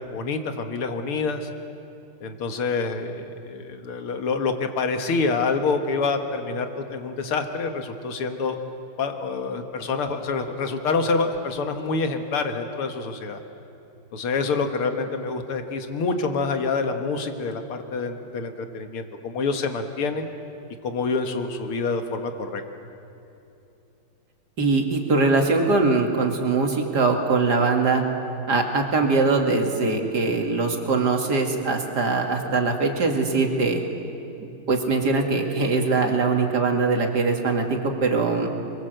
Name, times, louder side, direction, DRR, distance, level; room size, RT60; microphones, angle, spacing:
voice 1, 0.0-1.5 2.2-8.6 9.0-13.4 14.1-20.3 20.8-22.6, left 4 dB, 90° left, 6 dB, 2.4 m, -27 dB
voice 2, 24.6-28.0 28.5-33.8 34.4-38.5, right 3 dB, 50° right, 2 dB, 2.9 m, -22 dB
29.5 x 22.0 x 7.9 m, 2.8 s
omnidirectional pair, 2.3 m